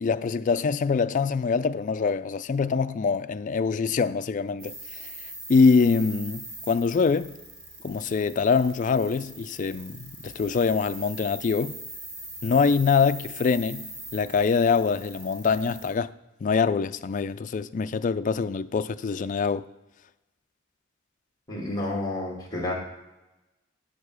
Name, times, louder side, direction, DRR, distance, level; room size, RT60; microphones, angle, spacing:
voice 1, 0.0-4.7 5.0-5.1 5.5-7.3 7.8-11.7 12.4-16.1 16.4-19.6, left 5 dB, 40° left, 0.3 m, -24 dB
sound 1, 4.6-15.9, right 1 dB, 55° right, 4.0 m, -42 dB
voice 2, 21.5-22.7, left 1 dB, 20° left, 2.3 m, -30 dB
11.0 x 5.1 x 6.2 m
head